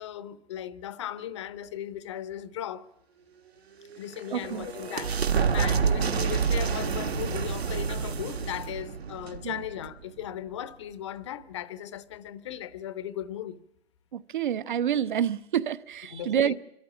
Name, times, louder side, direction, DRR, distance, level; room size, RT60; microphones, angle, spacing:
voice 1, 0.0-2.9 4.0-13.6 16.1-16.5, left 11 dB, 25° left, 0.8 m, -37 dB
sound 1, 3.8-10.3, right 6 dB, 65° right, 1.7 m, -28 dB
voice 2, 4.3-4.7 9.4-9.6 14.1-16.5, right 9 dB, 45° right, 0.9 m, -28 dB
24.5 x 13.5 x 8.7 m
figure-of-eight pair, 140°, 34 cm